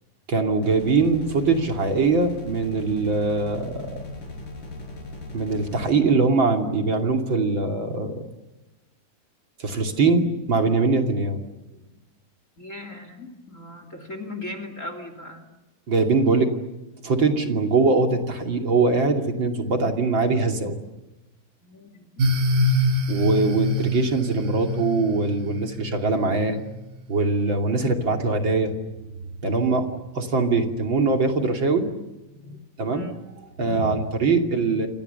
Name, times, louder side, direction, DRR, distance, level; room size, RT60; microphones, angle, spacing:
voice 1, 0.3-4.0 5.3-8.2 9.6-11.4 15.9-16.5 17.0-20.8 23.1-26.6 27.1-28.7 29.4-29.9 30.1-31.9 32.5-33.1 33.6-34.9, right 3 dB, 35° right, 4 dB, 3.1 m, -22 dB
sound 1, 0.6-5.9, left 2 dB, 65° left, 8.6 m, -38 dB
voice 2, 12.6-15.5 21.6-22.3 32.9-33.2, left 2 dB, 25° left, 8 dB, 3.0 m, -38 dB
sound 2, 22.2-26.7, left 1 dB, 85° right, 5.5 m, -25 dB
29.0 x 26.5 x 7.0 m, 1.0 s
omnidirectional pair, 4.0 m